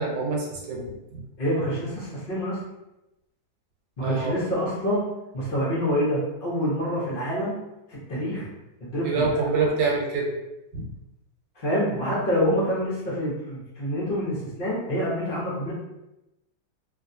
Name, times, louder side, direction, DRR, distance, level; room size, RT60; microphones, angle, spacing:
voice 1, 0.0-1.2 4.0-4.4 9.0-10.3 10.7-10.8, right 4 dB, 75° right, -1 dB, 1.3 m, -26 dB
voice 2, 1.4-2.6 4.0-5.0 5.3-7.5 7.9-8.5 8.8-9.3 9.6-9.7 11.6-15.7, equal, 40° left, -6 dB, 0.8 m, -26 dB
3.0 x 2.7 x 2.7 m, 0.94 s
omnidirectional pair, 2.0 m